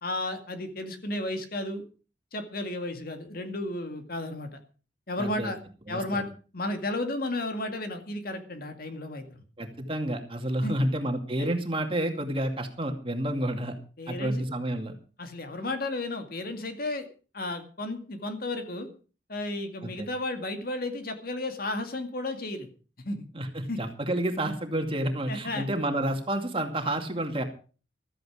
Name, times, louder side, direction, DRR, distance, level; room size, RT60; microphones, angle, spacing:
voice 1, 0.0-1.8 2.3-4.6 5.1-5.6 5.9-6.3 6.5-9.4 10.6-10.9 11.4-11.5 14.0-14.4 15.2-17.1 17.3-18.9 19.3-22.7 23.1-23.3 23.7-23.8 25.3-25.7, left 2 dB, 50° left, 6 dB, 2.2 m, -33 dB
voice 2, 5.2-5.5 5.9-6.2 9.6-13.8 14.1-14.9 19.8-20.1 23.3-27.4, right 1 dB, 30° right, 5 dB, 2.3 m, -30 dB
15.0 x 13.5 x 5.0 m, 0.37 s
head